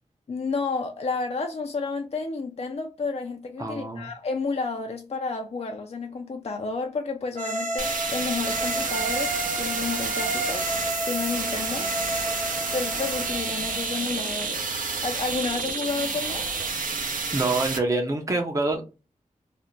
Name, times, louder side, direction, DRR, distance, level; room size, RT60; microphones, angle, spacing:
voice 1, 0.3-10.7 11.1-11.9 12.7-14.7 15.0-16.4, left 4 dB, 45° left, 0.4 m, -31 dB
voice 2, 3.6-4.1 17.3-18.8, right 2 dB, 20° right, 0.6 m, -26 dB
sound 1, 7.3-14.0, right 2 dB, 50° right, 1.0 m, -31 dB
sound 2, 7.8-17.8, right 4 dB, 65° right, 0.6 m, -30 dB
2.5 x 2.1 x 3.0 m
cardioid pair, 45°, 15 cm